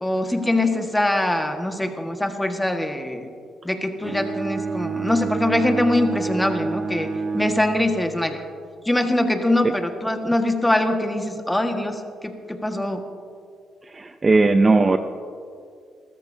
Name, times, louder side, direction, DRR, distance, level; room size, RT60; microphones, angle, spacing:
voice 1, 0.0-3.3 3.6-8.4 8.8-13.0, left 1 dB, 10° left, 4 dB, 1.6 m, -23 dB
Bowed string instrument, 4.0-8.3, right 4 dB, 45° right, 1.3 m, -28 dB
voice 2, 13.9-15.0, right 3 dB, 25° right, 9 dB, 0.5 m, -17 dB
29.5 x 13.5 x 2.8 m, 2.3 s
cardioid pair, 90°, 0 cm